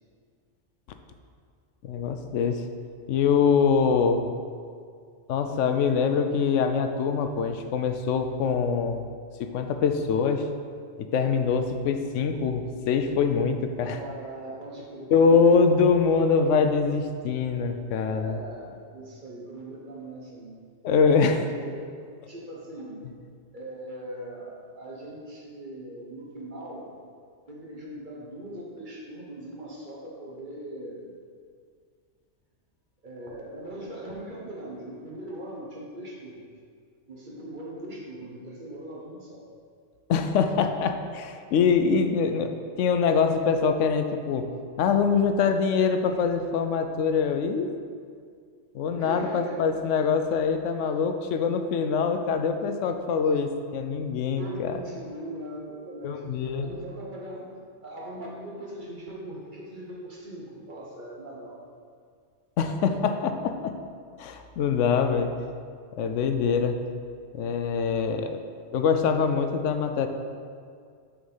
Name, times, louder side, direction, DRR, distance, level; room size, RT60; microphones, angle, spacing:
voice 1, 1.8-2.6 3.1-4.3 5.3-9.1 9.4-10.5 11.1-14.0 15.1-18.4 20.8-21.4 40.1-44.5 44.8-47.7 48.7-54.7 56.0-56.7 62.6-63.7 64.2-65.3 66.0-66.8 67.3-68.4 68.7-70.1, left 5 dB, 80° left, 7 dB, 0.9 m, -24 dB
voice 2, 13.7-15.7 18.1-20.5 21.1-23.0 23.5-26.9 27.5-31.2 33.0-36.6 37.1-39.4 48.9-49.9 54.4-57.5 57.8-61.6, right 1 dB, 45° right, -4 dB, 1.3 m, -40 dB
6.2 x 4.8 x 5.5 m, 2.1 s
omnidirectional pair, 1.2 m